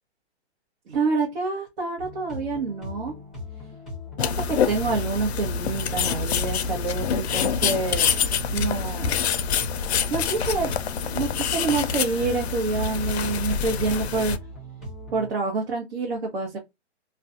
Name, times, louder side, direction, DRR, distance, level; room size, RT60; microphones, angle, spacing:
voice 1, 0.9-3.1 4.2-9.2 10.1-10.7 11.0-14.4 15.1-16.6, right 4 dB, 60° right, 0.9 m, -27 dB
sound 1, 2.0-15.3, left 1 dB, ahead, 0.7 m, -39 dB
sound 2, 4.2-14.4, left 7 dB, 70° left, 0.5 m, -26 dB
2.4 x 2.2 x 2.5 m
hypercardioid pair, 160°, 33 cm